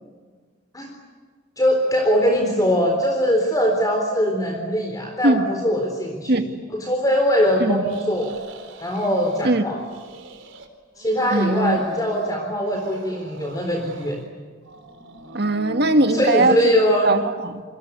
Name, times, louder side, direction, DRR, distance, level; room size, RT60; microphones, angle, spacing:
voice 1, 1.6-6.3 6.7-8.3 8.8-9.8 11.0-14.2 16.1-17.1, equal, 20° left, 2 dB, 3.8 m, -21 dB
sound 1, 7.8-9.5 9.8-10.7 10.9-12.3 12.7-14.3 14.6-16.2, right 2 dB, 70° right, 4.1 m, -41 dB
voice 2, 11.3-11.8 15.3-16.6 17.0-17.6, right 2 dB, 55° right, 7 dB, 2.1 m, -20 dB
29.0 x 24.0 x 8.2 m, 1.5 s
head